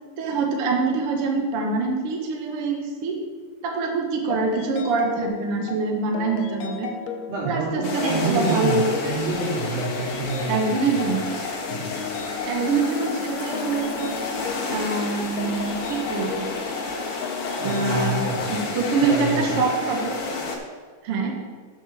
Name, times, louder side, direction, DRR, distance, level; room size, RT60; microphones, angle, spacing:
voice 1, 0.2-3.2 3.6-6.9 7.4-8.8 10.5-11.2 12.5-14.1 14.7-16.5 17.6-20.2 21.0-21.4, right 4 dB, 55° right, 1 dB, 1.8 m, -25 dB
sound 1, 4.3-19.1, left 6 dB, 75° left, 2.3 m, -35 dB
voice 2, 7.3-11.1 11.7-11.9 17.6-18.6 19.1-19.6, right 3 dB, 85° right, -6 dB, 4.8 m, -28 dB
sound 2, 7.8-20.6, left 3 dB, 55° left, 1.7 m, -30 dB
7.9 x 7.3 x 6.4 m, 1.5 s
omnidirectional pair, 4.1 m